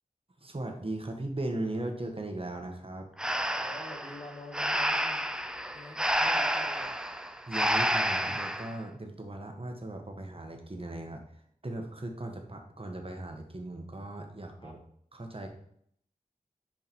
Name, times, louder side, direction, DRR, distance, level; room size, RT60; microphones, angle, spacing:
voice 1, 0.4-3.1 7.5-11.2 11.6-14.8 15.1-15.5, right 2 dB, 40° right, 3 dB, 1.4 m, -38 dB
Breathing, 3.2-8.7, equal, 5° right, 0.5 m, -30 dB
voice 2, 3.6-5.2 5.7-7.1 14.6-14.8, left 1 dB, 35° left, 0 dB, 1.7 m, -46 dB
6.6 x 5.1 x 4.5 m, 0.67 s
wide cardioid pair, 55°, 15 cm